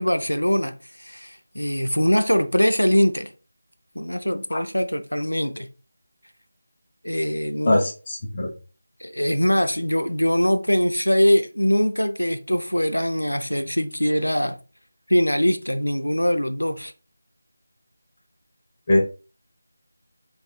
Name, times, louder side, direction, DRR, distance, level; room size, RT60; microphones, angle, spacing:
voice 1, 0.0-3.3 3.9-5.7 7.0-7.9 9.0-14.6 15.1-16.9, equal, 85° left, 0.5 m, -22 dB
voice 2, 7.6-8.5 18.9-19.0, left 1 dB, 30° left, 0.9 m, -21 dB
5.3 x 2.6 x 2.3 m
figure-of-eight pair, 165°, 0 cm